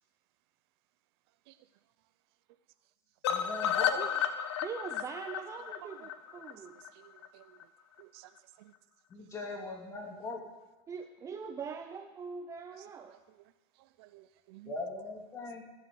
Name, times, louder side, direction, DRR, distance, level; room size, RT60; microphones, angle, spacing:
sound 1, 3.2-7.3 7.6-7.7 8.0-8.1 8.4-8.5, left 9 dB, 90° left, 1.1 m, -33 dB
voice 1, 3.3-4.0 9.1-10.4 14.6-15.6, left 2 dB, 20° left, 1 dB, 2.5 m, -40 dB
voice 2, 4.6-6.7 10.9-13.2, right 6 dB, 20° right, 6 dB, 0.7 m, -42 dB
voice 3, 7.0-7.6 8.0-8.3 8.6-8.7 13.1-13.2 14.0-14.7, right 18 dB, 70° right, 14 dB, 0.6 m, -54 dB
15.0 x 7.6 x 7.6 m, 1.1 s
supercardioid pair, 145°, 14 cm